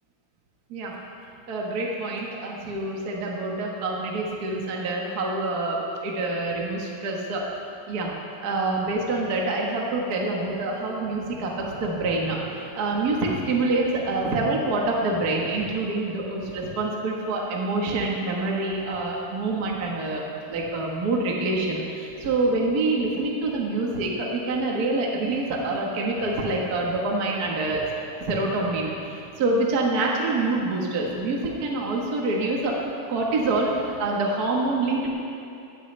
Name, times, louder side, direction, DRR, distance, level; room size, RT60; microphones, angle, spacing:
voice 1, 1.5-7.5 7.9-8.1 8.4-12.4 12.8-20.2 20.5-27.9 28.3-32.8 33.1-35.1, right 2 dB, 55° right, -2 dB, 1.0 m, -26 dB
17.5 x 13.5 x 3.3 m, 2.7 s
omnidirectional pair, 4.0 m